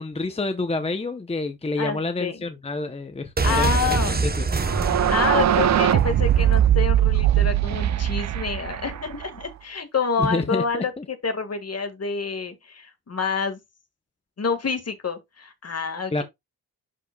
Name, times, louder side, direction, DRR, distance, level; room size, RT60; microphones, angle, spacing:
voice 1, 0.0-4.4 10.2-10.6 11.0-11.1 16.1-16.2, left 3 dB, 15° left, 0.7 m, -28 dB
voice 2, 1.8-2.4 3.4-4.2 5.1-10.9 11.2-13.6 14.4-16.2, left 5 dB, 40° left, 1.7 m, -28 dB
sound 1, 3.4-7.1 7.4-7.5, right 4 dB, 25° right, 0.8 m, -26 dB
sound 2, 4.6-9.4, right 11 dB, 45° right, 0.5 m, -21 dB
11.0 x 4.6 x 2.2 m
cardioid pair, 85°, 38 cm